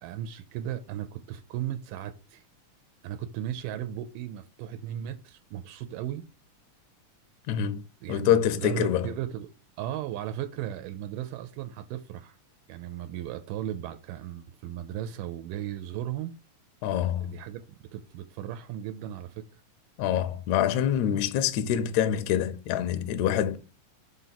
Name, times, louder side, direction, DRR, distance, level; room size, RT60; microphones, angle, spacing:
voice 1, 0.0-2.4 3.0-6.2 8.0-9.5 9.8-12.4 12.7-16.3 17.2-19.6, right 11 dB, 85° right, 2.2 m, -36 dB
voice 2, 7.5-7.8 8.1-9.1 16.8-17.3 20.0-23.6, left 10 dB, 75° left, 1.7 m, -26 dB
5.1 x 4.1 x 5.8 m
omnidirectional pair, 3.7 m